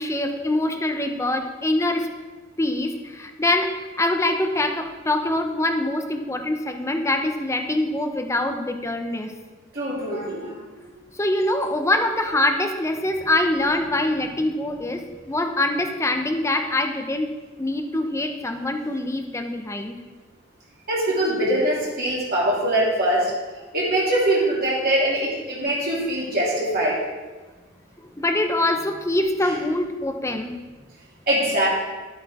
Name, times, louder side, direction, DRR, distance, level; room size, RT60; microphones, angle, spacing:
voice 1, 0.0-2.1 2.6-9.3 11.1-17.3 17.6-20.0 28.0-30.6, left 1 dB, 15° left, 5 dB, 0.8 m, -24 dB
voice 2, 9.7-10.6 20.9-23.3 23.7-27.0 31.3-31.7, right 1 dB, 50° right, -6 dB, 2.9 m, -22 dB
12.0 x 7.8 x 3.6 m, 1.3 s
head